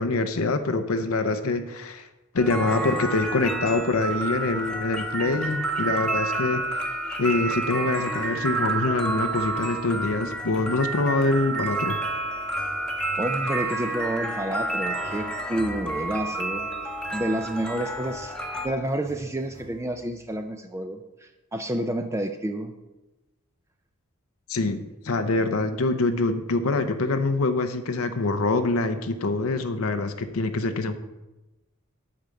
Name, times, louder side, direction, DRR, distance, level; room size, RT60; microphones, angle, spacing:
voice 1, 0.0-2.1 2.3-12.0 24.5-30.9, left 3 dB, 75° left, 8 dB, 0.7 m, -25 dB
sound 1, 2.4-18.7, right 2 dB, 5° left, 0.9 m, -30 dB
sound 2, 9.0-20.2, right 1 dB, 85° right, 2.1 m, -48 dB
voice 2, 13.2-16.7 17.1-18.3 18.6-22.7, right 1 dB, 15° right, 6 dB, 0.4 m, -29 dB
8.6 x 5.1 x 7.7 m, 1.0 s
head